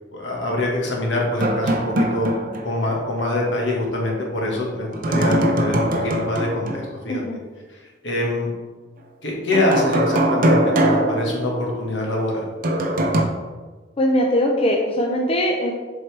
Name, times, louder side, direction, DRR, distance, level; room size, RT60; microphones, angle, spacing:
voice 1, 0.1-2.3 2.6-7.2 8.0-8.5 9.2-12.5, left 1 dB, 70° left, -2 dB, 1.6 m, -24 dB
sound 1, 1.4-2.9 3.2-3.3 4.9-6.9 9.5-12.0 12.6-13.2, right 1 dB, 50° right, 0.7 m, -21 dB
voice 2, 5.1-5.4 7.1-7.4 14.0-15.7, equal, 30° left, 0 dB, 0.6 m, -21 dB
7.5 x 4.5 x 3.3 m, 1.3 s
head